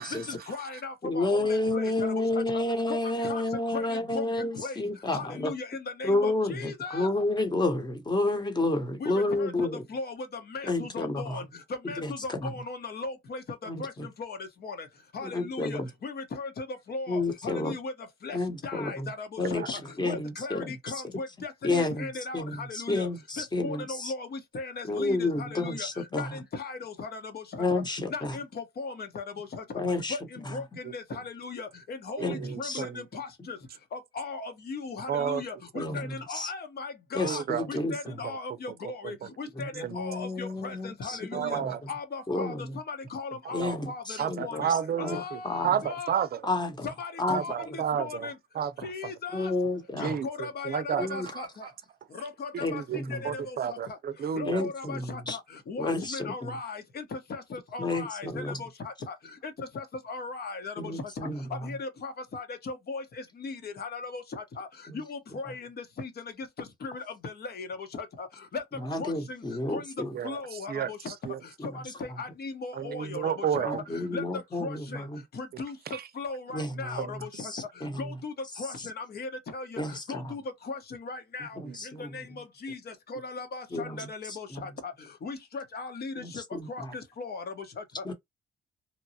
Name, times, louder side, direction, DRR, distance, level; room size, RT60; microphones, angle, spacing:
voice 1, 0.1-2.1 3.2-3.4 3.7-3.8 4.1-4.2 4.6-4.7 5.1-7.1 9.0-9.1 9.4-10.1 10.5-11.4 11.9-13.4 13.8-13.9 14.2-14.4 14.6-14.9 15.1-17.9 18.2-18.4 18.6-19.6 20.0-23.1 23.4-25.9 26.1-27.4 28.1-29.6 30.1-30.2 30.5-30.6 30.9-33.6 33.9-37.4 37.7-41.6 41.9-42.5 42.9-44.7 45.0-46.2 46.8-48.3 48.8-49.5 50.0-51.4 52.2-52.8 53.1-53.4 54.3-55.4 55.7-58.7 59.1-59.2 59.7-60.9 61.6-63.0 63.4-64.2 64.6-64.7 64.9-65.7 66.0-66.1 66.8-67.7 67.9-68.3 68.5-68.6 69.0-69.4 69.7-69.8 70.2-71.0 71.7-73.7 74.1-74.2 74.6-75.0 75.4-75.7 76.2-77.5 78.0-78.3 78.6-79.8 80.1-80.4 80.7-81.6 82.1-82.8 83.1-84.9 85.2-86.4 86.7-86.8 87.2-87.4 87.8-87.9, left 4 dB, 55° left, 1.1 m, -37 dB
voice 2, 1.0-5.5 6.0-9.8 10.7-11.4 12.0-12.5 13.7-14.1 15.2-15.9 17.1-17.7 18.3-19.1 19.4-21.0 21.6-22.1 22.3-24.1 24.8-26.3 27.6-28.4 29.7-30.2 30.4-30.5 32.2-32.8 35.7-36.5 37.1-38.1 39.6-41.7 42.3-42.7 43.5-45.7 46.4-46.9 47.2-47.4 47.7-47.8 49.3-50.2 51.0-51.3 52.6-53.2 54.4-55.4 55.8-56.5 57.8-58.6 60.8-61.4 68.8-70.1 71.6-71.7 73.6-75.2 76.5-77.0 77.3-78.1 79.8-80.3 81.6-82.1 83.7-84.1 84.5-84.6 86.2-86.9 88.0-88.1, left 2 dB, 20° left, 1.1 m, -31 dB
voice 3, 32.2-33.0 35.1-35.4 37.2-37.7 38.2-38.3 38.8-39.3 39.8-39.9 41.3-41.8 43.6-43.7 44.2-46.4 47.3-48.9 50.0-50.3 50.6-51.7 52.5-53.0 53.2-54.6 70.1-70.4 70.7-70.9 71.2-71.4 72.7-73.8 75.9-76.0 77.0-77.1 81.7-81.8, right 8 dB, 50° right, 0.6 m, -31 dB
2.9 x 2.2 x 2.8 m
cardioid pair, 90°, 20 cm